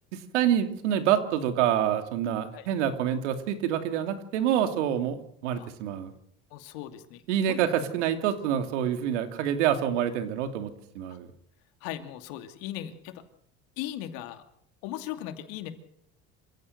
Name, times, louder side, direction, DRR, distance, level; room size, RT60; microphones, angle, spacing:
voice 1, 0.1-6.1 7.3-11.3, right 10 dB, 85° right, 7 dB, 2.8 m, -27 dB
voice 2, 6.5-7.6 11.1-11.2 11.8-13.2 13.8-14.4 14.8-15.7, left 12 dB, 75° left, 8 dB, 2.7 m, -38 dB
27.5 x 16.0 x 6.7 m, 0.68 s
supercardioid pair, 90°, 35 cm